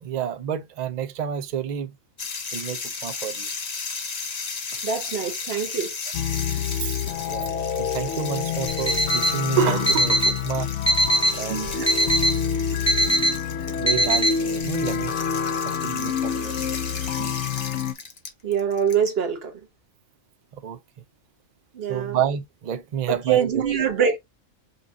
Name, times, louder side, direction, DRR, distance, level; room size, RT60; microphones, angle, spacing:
voice 1, 0.0-2.0 2.5-3.5 6.8-7.0 7.2-10.7 11.3-11.8 12.9-13.2 13.8-15.1 15.6-16.6 20.5-20.8 21.9-23.7 24.1-24.2, right 9 dB, 90° right, 0.3 m, -29 dB
sound 1, 2.2-19.1, left 4 dB, 40° left, 0.7 m, -35 dB
voice 2, 4.8-5.9 11.5-11.9 13.0-13.1 17.2-17.4 18.4-19.5 21.7-22.2 23.3-24.2, right 7 dB, 50° right, 1.1 m, -24 dB
sound 2, 6.1-17.9, left 8 dB, 65° left, 0.8 m, -27 dB
Alarm, 8.7-9.4 9.9-10.4 10.9-11.4 11.9-12.4 12.9-13.4 13.9-14.4, equal, 15° left, 1.0 m, -21 dB
5.4 x 2.5 x 2.6 m
omnidirectional pair, 1.4 m